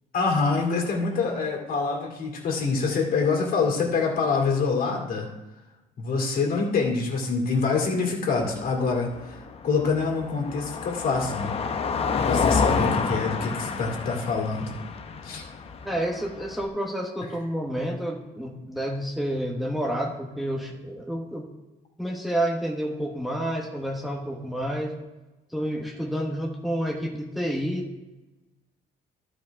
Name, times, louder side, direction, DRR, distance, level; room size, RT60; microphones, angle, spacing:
voice 1, 0.1-5.3 6.0-9.4 9.6-11.5 12.1-14.7 15.2-15.4, left 4 dB, 55° left, 0 dB, 2.4 m, -25 dB
Car passing by, 8.4-16.7, left 5 dB, 35° left, 0.8 m, -29 dB
voice 2, 15.8-21.5 22.0-25.0 25.5-27.9, equal, ahead, -1 dB, 1.2 m, -29 dB
12.0 x 5.1 x 4.7 m, 1.1 s
cardioid pair, 110°, 17 cm